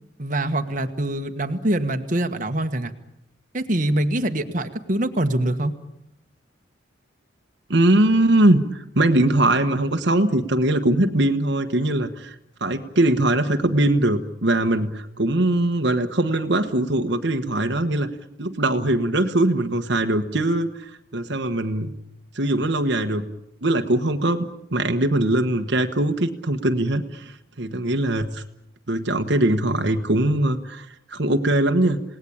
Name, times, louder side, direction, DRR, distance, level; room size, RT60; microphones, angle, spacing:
voice 1, 0.2-2.9 3.5-5.7, right 1 dB, 45° right, 6 dB, 1.5 m, -24 dB
voice 2, 7.7-12.3 12.6-18.1 18.4-21.9 22.3-23.2 23.6-24.5 24.7-28.4 28.9-32.0, right 1 dB, 65° right, 6 dB, 1.3 m, -21 dB
28.0 x 18.5 x 8.7 m, 0.83 s
head